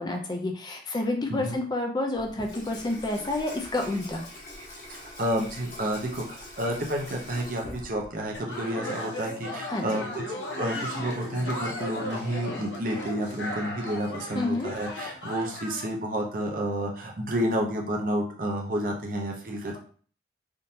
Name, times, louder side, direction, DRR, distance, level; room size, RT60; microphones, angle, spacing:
voice 1, 0.0-4.2 9.7-9.9 14.4-14.7, left 2 dB, 25° left, 2 dB, 0.4 m, -29 dB
Water tap faucet / Sink (filling or washing), 2.1-8.4, left 1 dB, 55° left, 1.4 m, -43 dB
voice 2, 4.9-10.2 10.5-19.8, right 1 dB, 50° right, 1 dB, 0.7 m, -30 dB
sound 1, 8.3-15.9, left 1 dB, 85° left, 0.8 m, -36 dB
3.6 x 2.7 x 2.7 m, 0.44 s
head